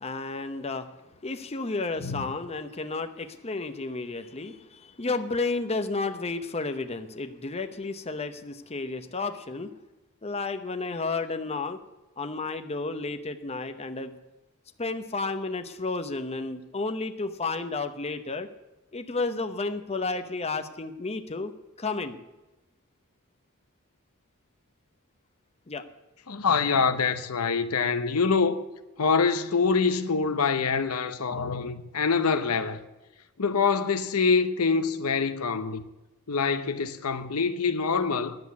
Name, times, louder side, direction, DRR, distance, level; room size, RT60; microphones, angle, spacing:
voice 1, 0.0-0.9 1.2-9.7 10.2-11.8 12.2-14.1 14.8-18.5 18.9-21.5 21.8-22.2 25.7-25.8, left 3 dB, 30° left, 0.8 m, -32 dB
voice 2, 2.0-2.3 26.3-28.6 29.0-32.8 33.4-35.8 36.3-38.4, left 5 dB, 80° left, 0.9 m, -25 dB
10.5 x 7.8 x 9.4 m
head